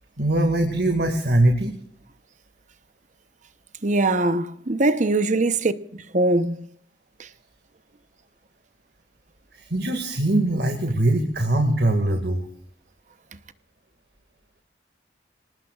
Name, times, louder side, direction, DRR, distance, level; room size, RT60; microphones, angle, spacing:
voice 1, 0.2-1.7 9.5-12.4, right 1 dB, 65° right, 2.0 m, -21 dB
voice 2, 3.8-5.7 6.1-6.6, right 2 dB, 45° right, 0.9 m, -21 dB
26.5 x 19.0 x 2.4 m
head